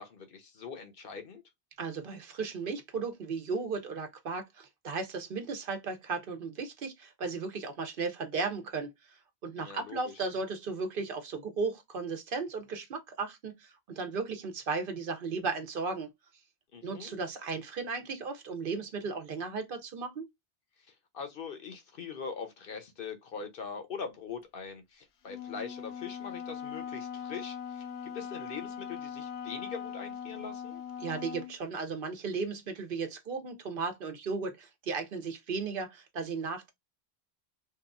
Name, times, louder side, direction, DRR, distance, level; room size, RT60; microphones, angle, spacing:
voice 1, 0.0-1.4 9.6-10.1 16.7-17.1 20.9-30.8, left 5 dB, 60° left, 0.9 m, -42 dB
voice 2, 1.8-16.1 16.8-20.2 31.0-36.7, right 4 dB, 60° right, 0.8 m, -35 dB
Wind instrument woodwind instrument, 25.3-31.6, left 8 dB, 85° left, 0.9 m, -40 dB
2.9 x 2.3 x 2.3 m
omnidirectional pair, 1.1 m